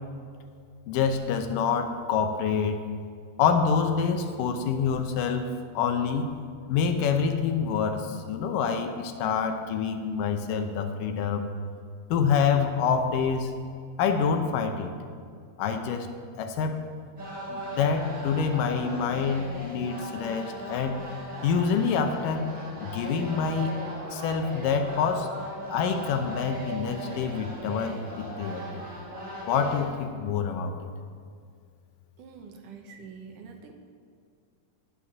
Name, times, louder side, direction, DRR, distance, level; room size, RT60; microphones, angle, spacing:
voice 1, 0.9-2.8 3.4-6.3 6.7-11.5 12.1-13.5 14.0-14.9 15.6-16.1 16.4-16.9 17.5-21.0 21.4-22.5 22.8-23.8 24.1-25.3 25.7-28.6 29.5-30.9, left 6 dB, 85° left, 6 dB, 2.5 m, -26 dB
sound 1, 17.2-29.9, right 1 dB, 30° right, 2.2 m, -38 dB
voice 2, 32.2-33.7, right 5 dB, 75° right, 3 dB, 2.6 m, -45 dB
10.0 x 9.8 x 6.0 m, 2.2 s
omnidirectional pair, 3.8 m